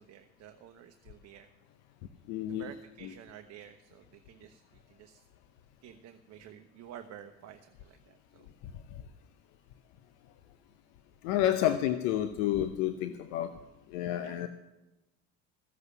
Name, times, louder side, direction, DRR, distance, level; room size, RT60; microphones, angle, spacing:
voice 1, 0.0-1.5 2.5-5.2 5.8-8.5 14.2-14.4, right 10 dB, 50° right, 6 dB, 1.1 m, -51 dB
voice 2, 2.3-2.7 3.0-3.1 11.2-13.5 13.9-14.5, left 12 dB, 65° left, 10 dB, 0.9 m, -29 dB
14.5 x 8.1 x 8.4 m, 1.0 s
hypercardioid pair, 65°, 33 cm